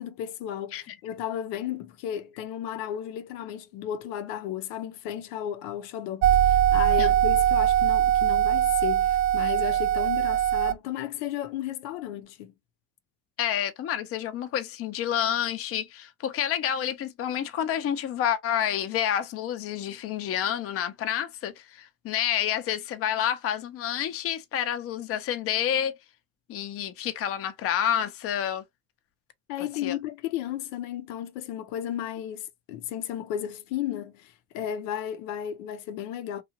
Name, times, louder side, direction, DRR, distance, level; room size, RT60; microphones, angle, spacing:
voice 1, 0.0-12.5 29.5-36.4, left 10 dB, 80° left, 0.7 m, -34 dB
sound 1, 6.2-10.7, right 11 dB, 35° right, 0.4 m, -22 dB
voice 2, 13.4-26.0 26.5-28.6 29.8-29.9, left 10 dB, 40° left, 0.6 m, -29 dB
2.8 x 2.4 x 2.7 m
supercardioid pair, 105°, 37 cm